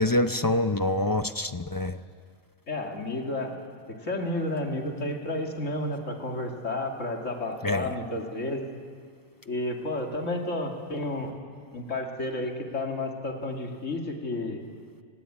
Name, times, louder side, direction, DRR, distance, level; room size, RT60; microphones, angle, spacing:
voice 1, 0.0-2.0 7.6-7.9, left 1 dB, 25° left, 10 dB, 0.4 m, -25 dB
voice 2, 2.7-3.6 3.9-8.7 9.5-11.3 11.7-14.6, left 1 dB, 80° left, 2 dB, 2.7 m, -31 dB
27.0 x 18.5 x 8.7 m, 2.1 s
omnidirectional pair, 1.3 m